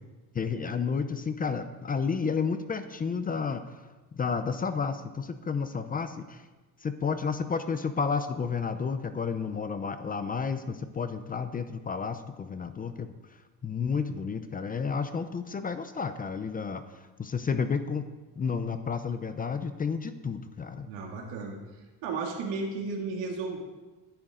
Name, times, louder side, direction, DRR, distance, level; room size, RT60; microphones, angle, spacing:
voice 1, 0.3-3.6 4.1-6.4 6.8-13.1 13.6-16.8 17.2-18.0 18.4-20.9, left 5 dB, 20° left, 10 dB, 0.6 m, -31 dB
voice 2, 20.9-21.6 22.0-23.6, right 4 dB, 85° right, 1 dB, 2.7 m, -33 dB
19.5 x 10.5 x 3.8 m, 1.2 s
cardioid pair, 155°, 42 cm